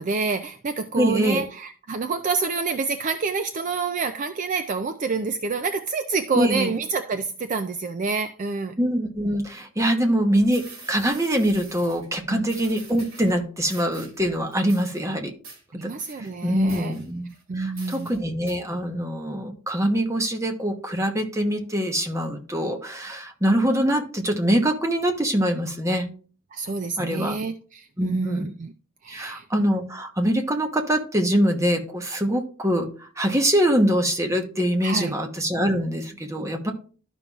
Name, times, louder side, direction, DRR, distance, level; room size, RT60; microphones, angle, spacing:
voice 1, 0.0-8.8 12.3-12.5 15.7-17.0 17.5-18.1 26.5-28.7 29.0-29.5 34.8-35.1, right 4 dB, 35° right, 0.4 m, -27 dB
voice 2, 1.0-1.4 6.3-6.7 8.8-15.3 15.7-15.9 16.2-17.3 17.5-26.1 27.0-27.4 28.0-28.5 29.1-36.7, equal, 15° right, 1.0 m, -24 dB
sound 1, 10.5-12.1 12.5-13.4 13.7-14.2 14.5-15.0 15.4-15.6 16.0-16.3 16.7-17.4 17.8-18.2 18.5-18.6, right 3 dB, 65° right, 2.8 m, -44 dB
12.5 x 5.4 x 2.4 m
head